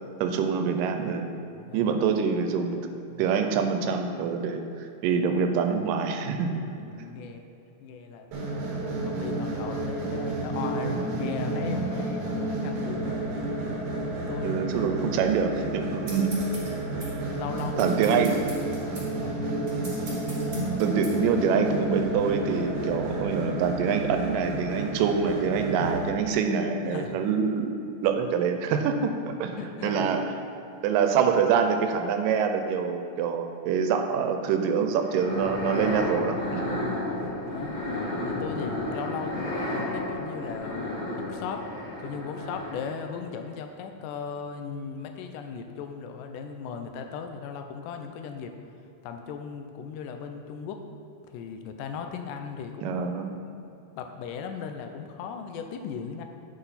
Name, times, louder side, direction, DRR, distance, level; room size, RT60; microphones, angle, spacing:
voice 1, 0.2-1.4 1.7-2.9 3.2-4.6 5.0-6.6 14.4-16.5 17.8-18.3 20.8-27.8 28.0-29.1 29.4-29.6 29.8-30.3 30.8-36.8 52.8-53.4, right 6 dB, 90° right, 6 dB, 2.3 m, -25 dB
voice 2, 1.5-2.2 3.1-3.3 6.8-7.5 7.8-13.3 14.1-14.6 15.8-16.1 17.0-18.5 18.8-19.8 25.7-25.9 26.9-27.2 29.2-30.1 36.8-37.1 37.5-37.8 38.2-41.6 42.0-48.5 49.0-50.8 51.3-53.1 53.4-53.7 54.0-56.2, left 6 dB, 85° left, 5 dB, 2.2 m, -38 dB
sound 1, 8.3-26.1, right 2 dB, 70° right, 2.5 m, -31 dB
Edwards Hands, 16.1-21.2, right 2 dB, 35° right, 2.1 m, -44 dB
sound 2, 35.1-43.1, left 1 dB, 50° left, 2.6 m, -32 dB
9.9 x 6.0 x 4.2 m, 2.8 s
omnidirectional pair, 3.8 m